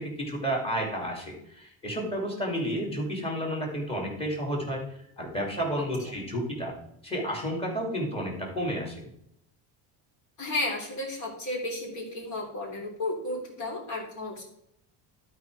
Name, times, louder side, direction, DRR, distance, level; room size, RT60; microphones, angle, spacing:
voice 1, 0.0-6.7 7.0-9.0, equal, 15° left, -1 dB, 2.7 m, -31 dB
voice 2, 10.4-14.4, left 2 dB, 45° left, -1 dB, 3.2 m, -33 dB
12.0 x 4.9 x 4.7 m, 0.75 s
cardioid pair, 150°, 42 cm